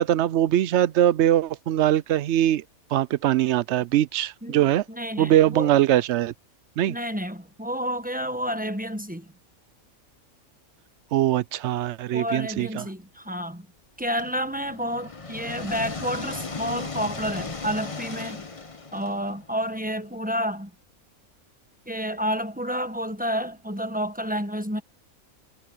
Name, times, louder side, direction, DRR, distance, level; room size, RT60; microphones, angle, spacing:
voice 1, 0.0-2.6 2.9-4.8 5.2-6.3 6.8-7.0 11.1-12.8, right 12 dB, 65° right, 0.7 m, -22 dB
voice 2, 4.4-5.8 6.9-9.3 12.1-13.7 14.0-18.4 18.9-20.7 21.9-24.8, equal, 5° right, 1.0 m, -30 dB
sound 1, 14.2-20.1, left 4 dB, 25° left, 1.0 m, -36 dB
omnidirectional pair, 1.5 m